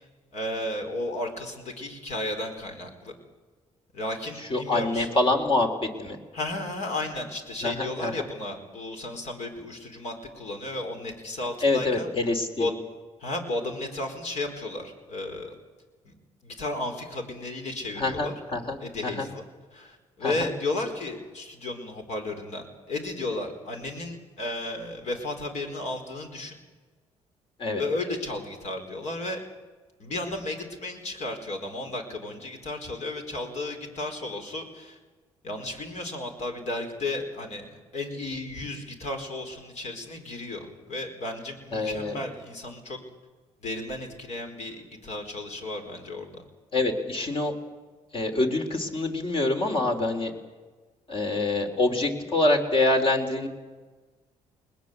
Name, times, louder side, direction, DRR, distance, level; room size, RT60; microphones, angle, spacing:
voice 1, 0.3-3.1 3.9-5.1 6.3-12.1 12.6-12.7 13.2-15.5 16.0-16.1 16.4-18.3 18.8-19.4 19.7-26.6 27.8-29.4 30.0-35.0 35.4-43.0 43.6-46.4, left 2 dB, 65° left, 4 dB, 4.7 m, -34 dB
voice 2, 4.5-5.7 6.0-6.2 7.6-8.1 11.6-12.7 18.0-18.8 19.0-19.3 20.2-20.5 27.6-27.8 41.7-42.2 46.7-47.5 48.1-50.3 51.1-53.5, left 2 dB, 45° left, 4 dB, 3.7 m, -25 dB
21.0 x 20.0 x 8.2 m, 1.3 s
cardioid pair, 85°, 13 cm